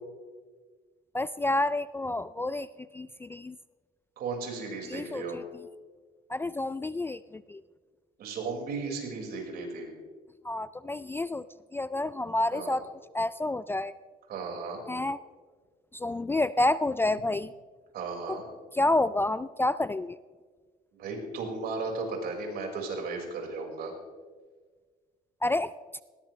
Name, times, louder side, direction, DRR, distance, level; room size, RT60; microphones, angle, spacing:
voice 1, 1.1-2.7 2.9-3.6 4.9-5.4 6.3-7.6 10.4-11.4 11.7-12.9 13.1-13.9 14.9-15.2 15.9-17.5 18.3-18.4 18.7-20.2 25.4-25.7, left 2 dB, 15° left, 16 dB, 0.3 m, -29 dB
voice 2, 4.2-5.4 8.2-9.9 12.5-12.8 14.3-14.8 17.9-18.4 20.9-23.9, right 4 dB, 65° right, 1 dB, 5.0 m, -35 dB
19.5 x 17.5 x 3.2 m, 1.5 s
cardioid pair, 110°, 17 cm